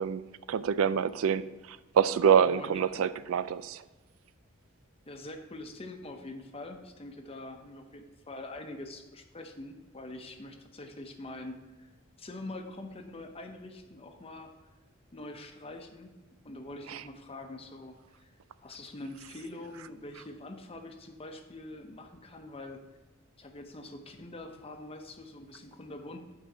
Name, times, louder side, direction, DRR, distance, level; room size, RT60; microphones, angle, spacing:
voice 1, 0.0-3.8 16.9-17.0, right 7 dB, 85° right, 15 dB, 0.4 m, -26 dB
voice 2, 2.4-3.1 5.1-11.9 12.2-14.5 15.1-16.1 16.4-18.3 18.6-22.8 23.4-26.2, left 2 dB, 30° left, 5 dB, 0.8 m, -44 dB
9.1 x 3.9 x 6.0 m, 1.1 s
head